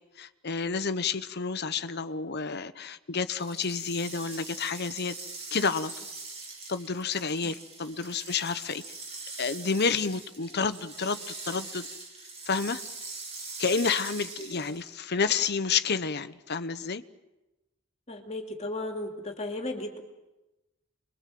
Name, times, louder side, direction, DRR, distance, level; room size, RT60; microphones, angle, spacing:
voice 1, 0.2-5.2 5.5-5.9 6.7-8.8 9.4-11.9 12.5-12.8 13.6-17.0, left 5 dB, 50° left, 12 dB, 1.0 m, -30 dB
sound 1, 3.3-14.9, right 3 dB, 30° right, 4.6 m, -42 dB
voice 2, 18.1-20.0, left 2 dB, 30° left, 3 dB, 2.8 m, -35 dB
28.5 x 22.0 x 7.7 m, 1.0 s
head